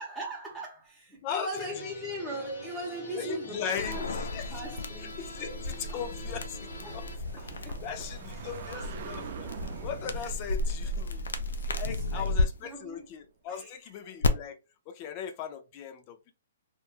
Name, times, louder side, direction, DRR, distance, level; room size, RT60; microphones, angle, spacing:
voice 1, 0.0-5.6 5.9-6.0 6.8-7.0 7.4-8.1 10.2-10.3 11.6-12.3 12.6-13.1 13.5-13.8, right 1 dB, ahead, 0.8 m, -40 dB
voice 2, 1.2-1.6 3.1-4.6 5.0-7.1 7.5-9.5 9.8-11.3 11.8-14.6 14.9-16.3, left 8 dB, 30° left, 0.4 m, -38 dB
sound 1, 1.5-7.2, left 1 dB, 55° left, 1.0 m, -45 dB
sound 2, 3.8-12.4 14.2-14.3, left 2 dB, 85° left, 0.5 m, -33 dB
sound 3, 6.4-13.0, right 7 dB, 40° right, 0.4 m, -45 dB
2.9 x 2.3 x 2.4 m
hypercardioid pair, 155°, 0 cm